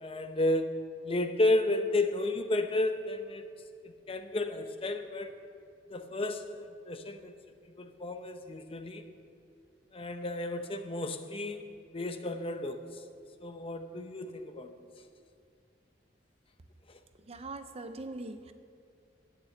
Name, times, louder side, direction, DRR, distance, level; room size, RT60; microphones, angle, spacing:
voice 1, 0.0-3.5 3.8-5.3 5.9-7.3 7.8-9.0 9.9-11.6 11.9-12.8 13.4-14.8, left 2 dB, 30° left, 8 dB, 0.8 m, -32 dB
voice 2, 17.2-18.5, right 2 dB, 35° right, 9 dB, 0.6 m, -41 dB
10.5 x 9.1 x 7.9 m, 2.3 s
head